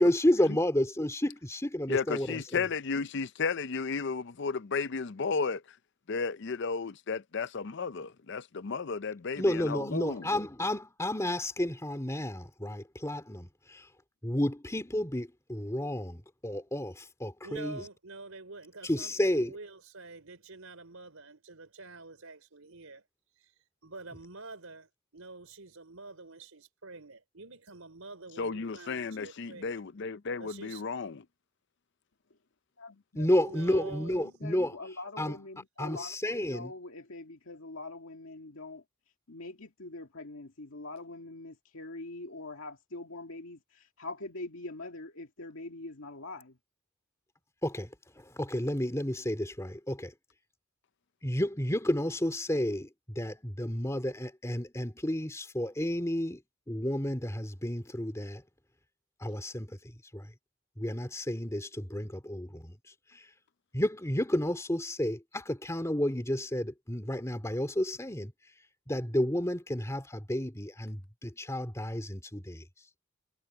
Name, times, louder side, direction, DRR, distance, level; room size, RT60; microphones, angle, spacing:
voice 1, 0.0-2.7 9.4-13.9 14.2-17.9 18.8-19.6 33.1-34.8 35.2-35.4 35.8-36.7 47.6-50.1 51.2-56.4 56.7-58.4 59.2-60.3 60.8-62.8 63.1-63.3 63.7-68.3 68.9-72.6, left 1 dB, 15° left, 2.6 m, -31 dB
voice 2, 1.9-5.6 6.1-10.3 28.4-31.2, left 5 dB, 55° left, 0.6 m, -33 dB
voice 3, 17.4-23.0 23.8-29.8 30.4-30.8 33.4-34.4, right 3 dB, 85° right, 4.4 m, -47 dB
voice 4, 32.8-33.3 34.0-36.2 36.4-38.8 39.3-46.6, left 2 dB, 80° left, 2.1 m, -43 dB
head